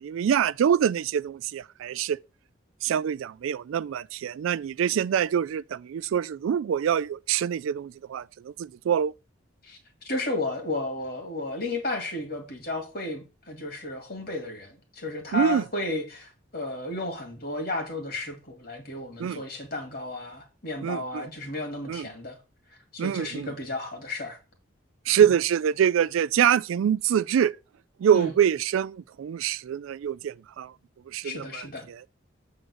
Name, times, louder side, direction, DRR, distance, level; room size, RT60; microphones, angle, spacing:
voice 1, 0.0-2.2 2.8-9.1 15.3-15.6 19.2-19.4 20.8-21.3 21.9-22.1 23.0-23.5 25.1-27.5 28.0-30.7 31.1-32.0, right 8 dB, 85° right, 0.3 m, -25 dB
voice 2, 10.0-22.4 22.9-24.4 25.1-25.3 28.1-28.3 31.2-31.9, left 2 dB, 50° left, 2.2 m, -33 dB
7.8 x 3.9 x 6.3 m
head